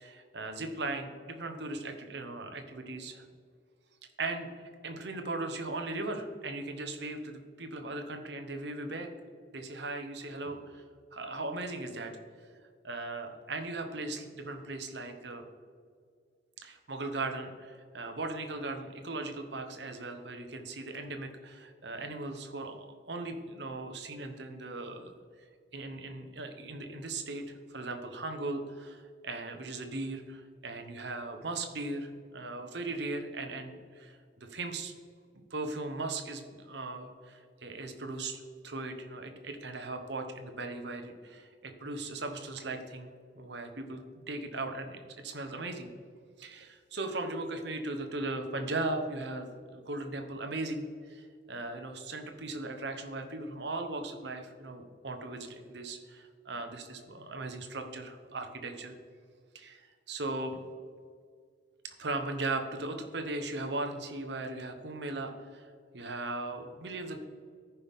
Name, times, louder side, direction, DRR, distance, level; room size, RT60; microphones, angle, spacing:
voice 1, 0.0-3.2 4.2-9.1 9.5-10.8 11.1-12.1 12.8-15.4 16.6-25.1 25.7-34.9 35.3-43.1 43.4-44.0 44.3-45.9 46.4-58.9 59.5-60.6 61.8-67.2, right 2 dB, 60° right, 5 dB, 1.1 m, -38 dB
14.0 x 5.6 x 3.7 m, 2.1 s
head